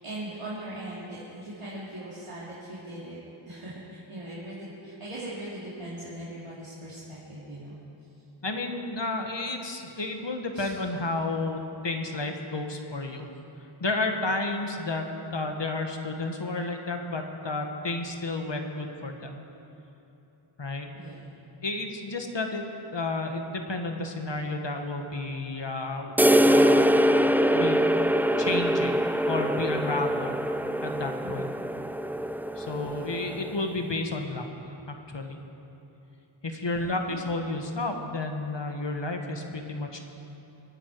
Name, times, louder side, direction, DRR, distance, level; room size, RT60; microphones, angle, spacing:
voice 1, 0.0-3.2 3.5-7.8 10.5-10.7 20.9-21.3 31.2-31.6 32.7-33.1 36.6-37.2, right 1 dB, 85° right, -9 dB, 2.5 m, -40 dB
voice 2, 8.4-13.3 13.8-15.0 15.3-19.4 20.6-20.9 21.6-26.1 26.4-26.9 27.5-27.9 28.4-29.0 29.3-30.3 30.8-31.5 32.5-35.4 36.4-40.0, left 2 dB, 60° left, 4 dB, 1.5 m, -31 dB
sound 1, 26.2-33.7, equal, 5° right, 0.4 m, -24 dB
25.5 x 9.6 x 4.7 m, 3.0 s
wide cardioid pair, 40°, 50 cm